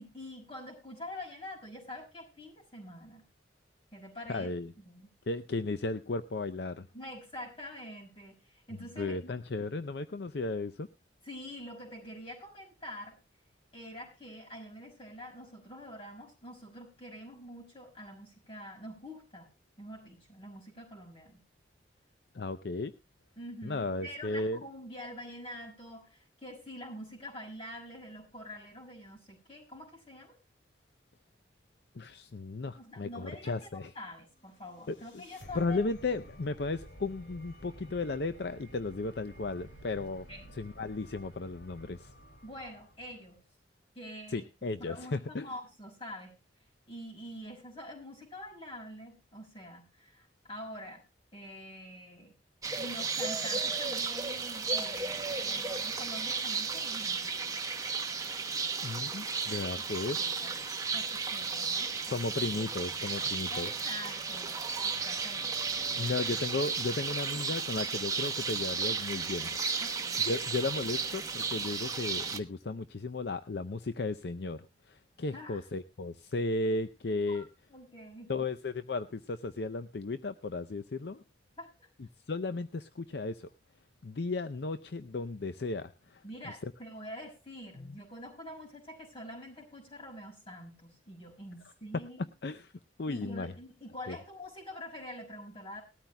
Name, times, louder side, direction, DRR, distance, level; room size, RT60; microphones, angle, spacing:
voice 1, 0.0-3.2 3.9-4.5 4.8-5.1 6.9-9.7 11.2-13.2 13.7-19.5 19.8-21.4 23.4-30.4 32.7-35.8 40.3-40.5 42.4-43.4 43.9-44.4 44.8-46.4 46.9-51.0 51.3-52.3 52.8-57.6 59.7-59.8 60.2-60.5 60.9-62.2 63.5-65.8 66.3-66.4 69.8-70.2 75.3-75.6 77.3-77.5 77.7-78.3 81.6-81.9 86.2-92.3 93.1-95.8, left 1 dB, 30° left, 1 dB, 5.8 m, -46 dB
voice 2, 4.3-4.7 5.3-6.9 9.0-10.9 22.3-22.9 23.6-24.6 31.9-33.9 34.9-35.2 35.5-40.3 40.5-42.1 44.3-45.5 58.8-60.2 62.1-63.7 66.0-69.6 70.3-77.5 78.3-81.2 82.3-83.5 84.0-86.2 86.6-86.7 87.8-88.0 92.4-92.7 93.0-93.5 94.1-94.2, left 3 dB, 60° left, 11 dB, 0.5 m, -35 dB
sound 1, 34.4-43.5, equal, 80° left, 3.1 m, -53 dB
sound 2, 52.6-72.4, right 5 dB, 20° right, 1.0 m, -34 dB
20.0 x 13.0 x 2.2 m, 0.27 s
head